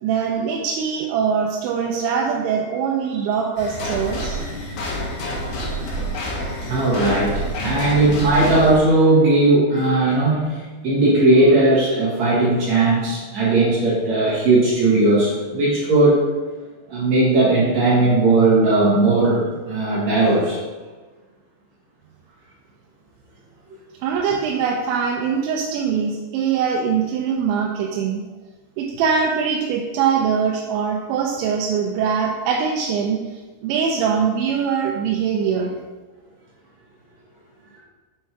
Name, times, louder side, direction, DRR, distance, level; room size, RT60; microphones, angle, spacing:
voice 1, 0.0-4.4 24.0-28.2 28.8-33.2 33.6-35.7, right 6 dB, 85° right, 0 dB, 2.8 m, -22 dB
sound 1, 3.6-8.8, equal, 65° left, 2.7 m, -27 dB
voice 2, 6.7-16.2 16.9-20.6, right 2 dB, 65° right, -7 dB, 1.7 m, -17 dB
7.3 x 4.4 x 4.6 m, 1.3 s
omnidirectional pair, 5.5 m